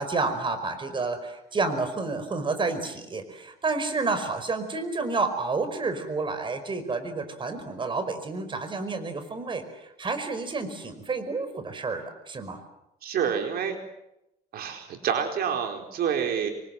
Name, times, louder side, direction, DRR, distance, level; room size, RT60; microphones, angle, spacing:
voice 1, 0.0-12.6, right 3 dB, 30° right, 9 dB, 5.1 m, -30 dB
voice 2, 13.0-13.8 14.5-16.5, right 8 dB, 65° right, 5 dB, 4.5 m, -28 dB
27.5 x 25.0 x 7.8 m, 0.88 s
cardioid pair, 110°, 17 cm